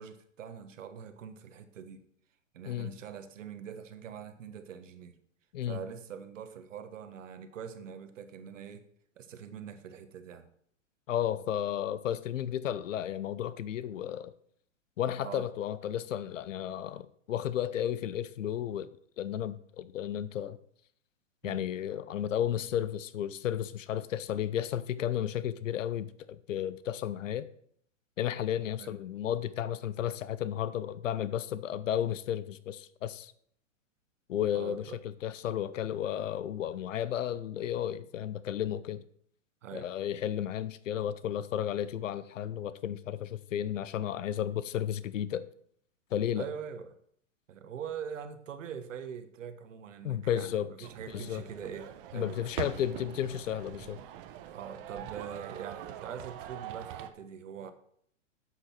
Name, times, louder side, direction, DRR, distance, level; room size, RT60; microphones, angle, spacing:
voice 1, 0.0-2.0 2.5-5.1 5.7-8.8 9.2-10.5 15.2-15.5 21.4-21.6 28.8-28.9 34.5-35.0 39.6-39.9 46.3-46.9 47.5-52.4 54.5-57.7, right 7 dB, 75° right, 1.5 m, -43 dB
voice 2, 11.1-14.3 15.0-18.9 19.2-20.6 21.4-27.5 28.2-33.3 34.3-39.0 39.7-45.5 46.1-46.5 50.0-50.9 51.1-51.4 52.1-54.0, left 10 dB, 75° left, 0.9 m, -33 dB
sound 1, 50.8-57.1, right 11 dB, 45° right, 1.1 m, -43 dB
8.0 x 7.9 x 6.0 m
hypercardioid pair, 125°, 38 cm